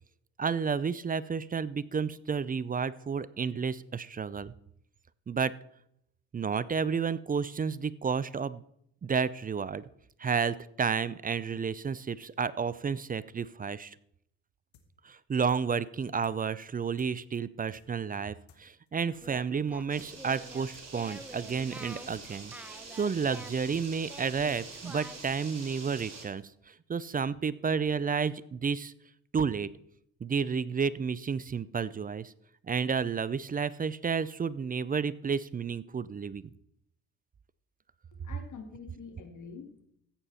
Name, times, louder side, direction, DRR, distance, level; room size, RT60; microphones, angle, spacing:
voice 1, 0.4-4.5 5.3-5.5 6.3-8.6 9.0-9.8 10.2-13.9 15.0-28.9 29.3-29.7 30.2-32.3 32.7-36.4, right 6 dB, 20° right, 19 dB, 0.5 m, -31 dB
sound 1, 14.7-14.9 15.1-15.2 15.5-15.6 15.9-16.0 16.2-16.4 16.6-16.7 17.0-17.1 17.4-17.5 17.7-17.9 18.1-18.2 18.5-18.6 18.9-19.0 19.2-19.4 19.6-20.1 20.4-20.5 20.7-20.9 21.1-21.2 21.5-21.6 21.9-22.0 22.2-22.4 22.6-22.7 23.0-23.1 23.4-23.5 23.7-23.9 24.1-24.2 24.5-24.6 24.9-25.0 25.2-25.4 25.6-26.1 26.4-26.5, left 8 dB, 70° left, 1.7 m, -60 dB
Singing, 19.1-25.4, right 1 dB, 5° right, 1.0 m, -49 dB
sound 2, 19.9-26.3, right 4 dB, 40° right, 3.5 m, -46 dB
voice 2, 38.1-39.8, left 5 dB, 45° left, 4 dB, 2.6 m, -46 dB
14.5 x 8.7 x 4.3 m, 0.73 s
hypercardioid pair, 60°, 41 cm